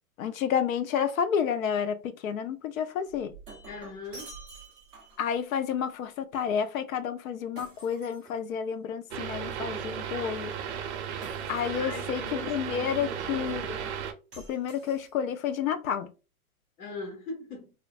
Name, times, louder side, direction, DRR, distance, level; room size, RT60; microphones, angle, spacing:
voice 1, 0.2-3.3 5.2-10.5 11.5-12.2 12.5-13.9 14.5-16.1, left 8 dB, 70° left, 0.6 m, -30 dB
Shatter, 3.1-5.3 7.6-8.8 11.2-12.0 14.3-15.4, right 3 dB, 5° right, 0.4 m, -49 dB
voice 2, 3.7-4.3 11.7-13.2 16.8-17.7, left 3 dB, 90° left, 1.4 m, -40 dB
sound 1, 9.1-14.1, right 8 dB, 50° right, 0.6 m, -35 dB
3.0 x 2.0 x 2.3 m
hypercardioid pair, 150°, 43 cm